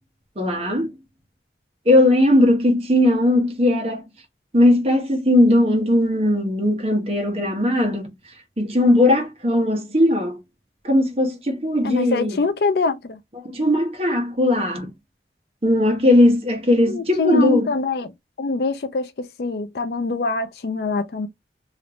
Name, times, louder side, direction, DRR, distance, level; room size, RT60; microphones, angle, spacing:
voice 1, 0.4-0.9 1.9-4.0 4.5-8.1 8.6-10.4 10.8-12.4 13.4-14.9 15.6-17.7, left 1 dB, 35° right, 1.0 m, -18 dB
voice 2, 11.8-13.2 16.9-18.1 18.4-19.1 19.4-21.3, left 3 dB, 60° left, 0.4 m, -24 dB
3.1 x 2.5 x 2.9 m
head